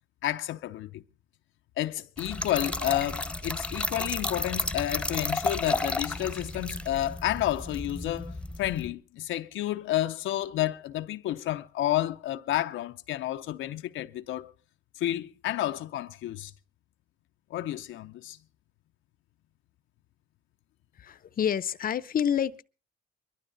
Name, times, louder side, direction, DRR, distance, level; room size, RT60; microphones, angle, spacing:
voice 1, 0.2-1.0 1.8-14.5 15.0-16.5 17.5-18.4, left 13 dB, 80° left, 0.6 m, -31 dB
Trickle dribble / Fill (with liquid), 2.2-8.9, left 2 dB, 5° left, 1.0 m, -32 dB
voice 2, 21.0-22.6, left 8 dB, 45° left, 0.7 m, -28 dB
22.0 x 12.0 x 3.9 m
cardioid pair, 90°, 20 cm